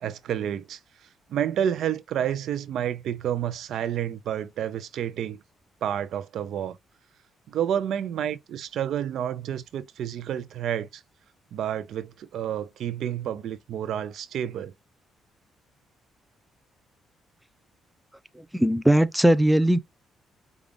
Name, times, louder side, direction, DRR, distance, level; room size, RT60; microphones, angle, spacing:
voice 1, 0.0-0.8 1.3-5.4 5.8-6.8 7.5-11.0 11.5-14.7, right 9 dB, 75° right, 0.4 m, -29 dB
voice 2, 18.4-19.8, right 1 dB, 5° right, 0.4 m, -20 dB
5.1 x 2.3 x 3.3 m
cardioid pair, 90°, 0 cm